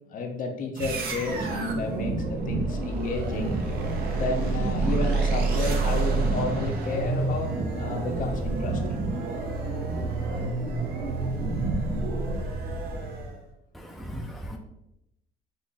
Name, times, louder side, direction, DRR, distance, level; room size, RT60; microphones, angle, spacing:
voice 1, 0.1-3.6 4.1-9.0 12.0-12.1, left 3 dB, 50° left, 3 dB, 0.8 m, -32 dB
sound 1, 0.8-13.4, right 3 dB, 65° right, 0.9 m, -28 dB
voice 2, 13.7-14.6, equal, ahead, 1 dB, 0.5 m, -37 dB
4.0 x 2.6 x 3.9 m, 0.84 s
cardioid pair, 110°, 17 cm